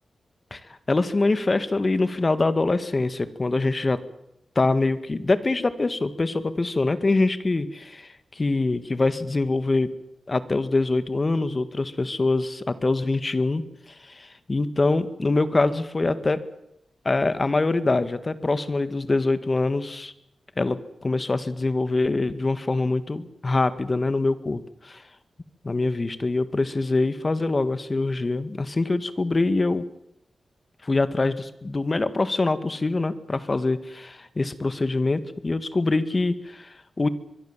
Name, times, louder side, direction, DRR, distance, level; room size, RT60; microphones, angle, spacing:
voice 1, 0.9-4.0 4.6-9.9 10.3-13.6 14.0-16.4 17.1-20.1 20.6-25.0 25.6-29.8 30.8-37.1, left 3 dB, 35° left, 12 dB, 1.9 m, -24 dB
24.0 x 22.5 x 7.4 m, 0.83 s
wide cardioid pair, 80°, 0 cm